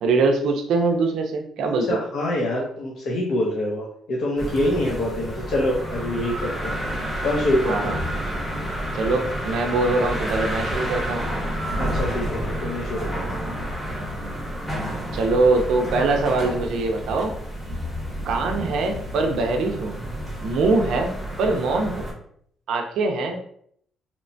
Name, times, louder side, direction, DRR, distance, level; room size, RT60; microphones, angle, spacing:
voice 1, 0.0-2.0 7.7-8.0 8.9-11.3 14.0-14.3 15.1-17.4 18.3-20.0 20.4-22.1 22.7-23.4, right 3 dB, 70° right, 4 dB, 0.4 m, -23 dB
voice 2, 1.9-6.8 7.2-8.0 11.8-13.3, left 1 dB, 55° left, -3 dB, 0.5 m, -25 dB
sound 1, 4.4-22.1, equal, 5° left, 0.8 m, -30 dB
2.8 x 2.1 x 2.6 m, 0.66 s
cardioid pair, 160°, 0 cm